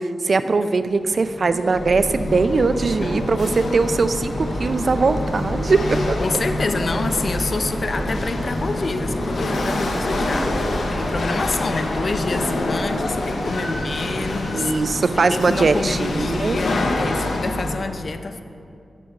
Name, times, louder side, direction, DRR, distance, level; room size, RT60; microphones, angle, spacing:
voice 1, 0.0-6.0 14.5-16.6, right 4 dB, 55° right, 11 dB, 0.3 m, -20 dB
Chatter / Hiss / Rattle, 0.9-17.8, left 2 dB, 85° left, 0.8 m, -27 dB
sound 1, 1.7-11.2, right 1 dB, 5° left, 0.9 m, -32 dB
sound 2, 4.3-15.3, right 1 dB, 25° right, 0.8 m, -36 dB
voice 2, 6.2-14.7 15.3-18.4, left 3 dB, 55° left, 9 dB, 0.4 m, -27 dB
6.8 x 6.2 x 5.2 m, 2.5 s
wide cardioid pair, 85°, 0 cm